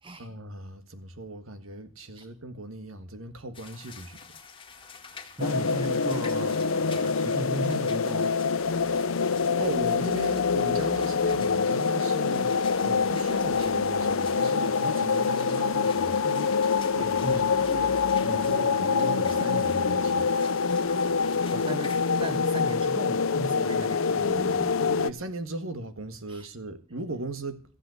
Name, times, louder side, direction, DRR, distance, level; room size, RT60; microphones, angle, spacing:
voice 1, 0.2-4.2 9.1-16.6 16.9-20.3 25.0-27.6, right 2 dB, 85° right, 1.7 m, -37 dB
sound 1, 3.5-22.4, left 5 dB, 25° left, 2.0 m, -48 dB
sound 2, 5.4-25.1, left 5 dB, 75° left, 0.7 m, -25 dB
voice 2, 5.4-8.3 17.2-17.5 18.2-18.5 21.5-25.1 26.3-26.5, right 1 dB, 25° right, 0.8 m, -36 dB
sound 3, 14.4-14.7 15.9-16.2 17.4-17.9 18.9-19.0, equal, 55° right, 4.5 m, -53 dB
15.0 x 8.3 x 7.8 m
head